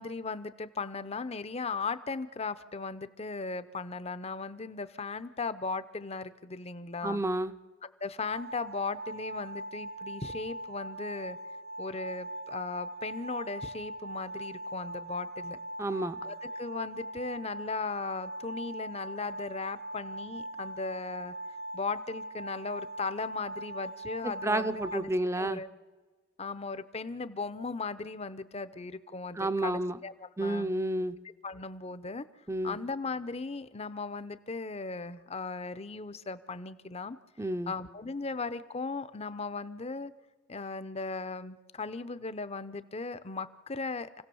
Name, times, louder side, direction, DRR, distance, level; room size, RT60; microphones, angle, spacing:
voice 1, 0.0-7.2 8.0-11.4 11.8-15.6 16.2-21.3 21.7-25.1 25.4-25.7 26.4-30.7 31.4-32.3 32.6-37.2 37.7-40.1 40.5-44.2, left 4 dB, 35° left, 14 dB, 0.7 m, -37 dB
voice 2, 7.0-7.5 15.8-16.2 24.4-25.6 29.4-30.0 30.4-31.2 32.5-32.8 37.4-37.7, right 1 dB, 15° right, 12 dB, 0.6 m, -30 dB
sound 1, 8.2-25.0, right 1 dB, 85° right, 7.6 m, -41 dB
28.5 x 16.5 x 7.0 m, 1.4 s
head